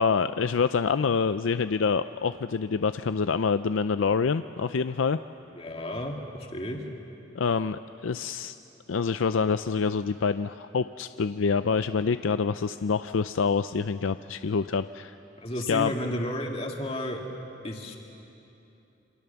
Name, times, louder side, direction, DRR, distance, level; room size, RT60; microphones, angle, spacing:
voice 1, 0.0-5.2 7.3-8.6 8.9-15.2 15.7-15.9, left 5 dB, 85° left, 11 dB, 0.5 m, -26 dB
voice 2, 5.6-6.8 15.4-17.2 17.6-18.0, left 1 dB, 30° left, 1 dB, 2.5 m, -32 dB
28.0 x 26.0 x 7.0 m, 2.9 s
head